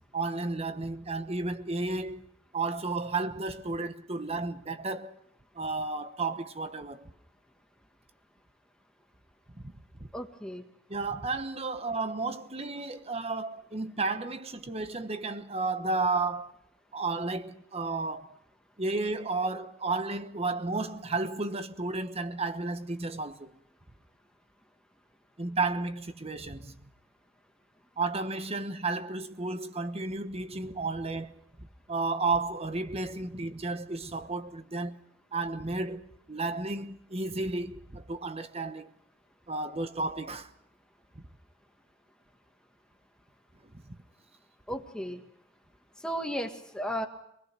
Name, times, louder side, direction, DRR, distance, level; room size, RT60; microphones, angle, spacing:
voice 1, 0.1-2.2 2.5-5.1 5.6-7.1 10.9-16.5 16.9-18.3 18.8-23.5 25.4-26.7 28.0-35.0 35.3-36.0 36.3-38.9 39.5-40.5 43.8-44.0, right 3 dB, 30° right, 1.2 m, -32 dB
voice 2, 10.1-10.6 44.7-45.2 46.0-47.1, equal, 5° left, 1.6 m, -34 dB
25.5 x 20.0 x 6.2 m
head